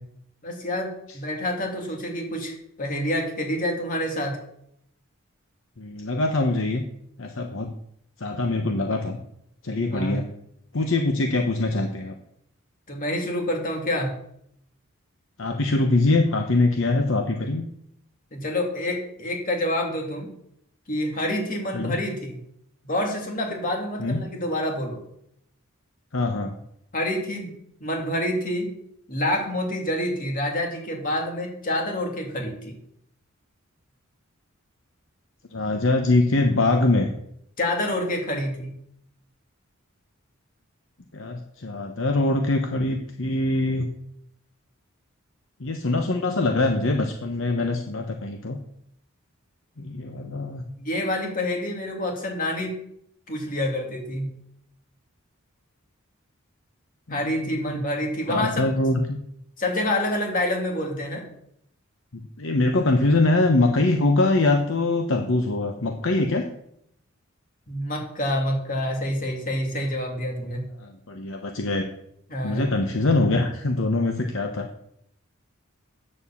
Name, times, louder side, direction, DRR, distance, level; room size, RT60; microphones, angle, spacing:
voice 1, 0.4-4.4 9.9-10.3 12.9-14.2 18.3-20.3 20.9-22.4 22.8-25.0 26.9-27.5 27.8-28.7 29.1-32.8 37.6-38.8 50.8-52.7 53.3-54.3 57.1-58.7 59.6-61.3 67.7-70.7 72.3-72.7, left 1 dB, 40° left, 1 dB, 2.5 m, -27 dB
voice 2, 5.8-6.8 7.2-7.7 8.2-9.2 9.6-10.3 10.7-12.2 15.4-17.6 21.7-22.0 24.0-24.2 26.1-26.5 35.5-37.1 41.1-43.9 45.6-48.6 49.8-50.6 57.1-57.8 58.3-59.2 62.4-66.4 70.8-71.8 72.4-74.7, left 2 dB, 65° left, 5 dB, 0.9 m, -23 dB
8.7 x 7.1 x 7.2 m, 0.73 s
head